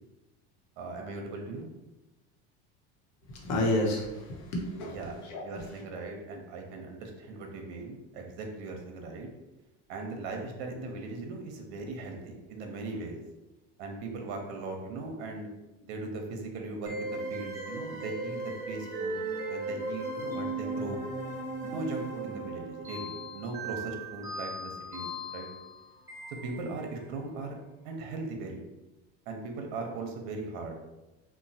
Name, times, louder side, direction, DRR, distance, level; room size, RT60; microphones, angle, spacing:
voice 1, 0.8-1.7 4.9-5.2 5.4-9.3 9.9-13.2 13.8-15.5 15.8-19.2 19.5-21.0 21.6-25.1 25.3-25.5 26.4-27.5 27.8-28.6 29.3-30.8, right 3 dB, 70° right, 2 dB, 0.7 m, -39 dB
voice 2, 3.2-5.7, left 1 dB, 55° left, 0 dB, 0.9 m, -31 dB
sound 1, 16.9-27.0, right 2 dB, 10° right, 0.7 m, -37 dB
3.0 x 2.1 x 2.7 m, 1.0 s
supercardioid pair, 115°, 33 cm